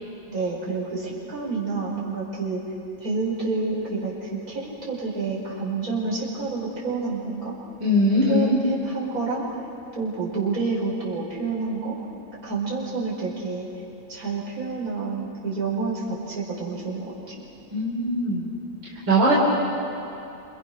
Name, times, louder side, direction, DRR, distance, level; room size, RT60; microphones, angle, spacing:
voice 1, 0.3-2.6 3.0-7.5 8.3-9.5 9.9-12.0 12.4-13.7 14.1-17.4, right 3 dB, 45° right, -5 dB, 5.8 m, -29 dB
voice 2, 7.8-8.6 17.7-18.5 19.1-19.3, equal, 65° right, -5 dB, 4.2 m, -20 dB
29.0 x 28.0 x 6.2 m, 2.8 s
omnidirectional pair, 2.2 m